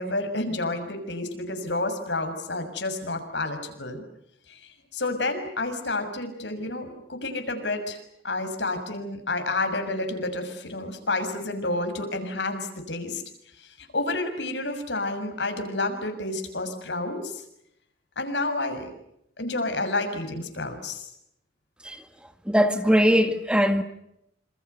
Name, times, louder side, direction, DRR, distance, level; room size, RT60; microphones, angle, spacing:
voice 1, 0.0-4.0 4.5-8.0 8.2-13.2 13.8-17.4 18.2-18.9 19.4-21.1, left 2 dB, 85° left, 6.7 m, -30 dB
voice 2, 22.5-23.8, equal, 5° right, 2.0 m, -20 dB
28.0 x 27.5 x 6.9 m
head